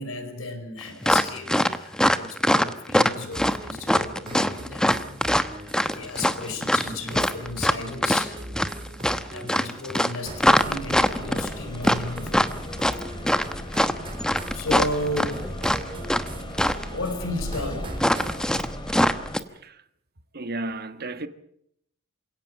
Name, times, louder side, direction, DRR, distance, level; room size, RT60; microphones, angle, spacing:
voice 1, 0.0-5.0 5.9-8.4 9.3-12.6 13.1-13.9 14.5-15.5 16.9-17.9, left 2 dB, 75° left, 4.5 m, -34 dB
sound 1, 1.0-16.3 16.5-16.9 18.0-19.4, equal, 5° left, 1.0 m, -22 dB
sound 2, 3.3-18.5, right 1 dB, 25° right, 4.2 m, -40 dB
sound 3, 10.2-19.4, left 1 dB, 25° left, 2.7 m, -37 dB
voice 2, 20.3-21.3, right 2 dB, 50° right, 1.6 m, -32 dB
28.0 x 17.5 x 7.4 m
head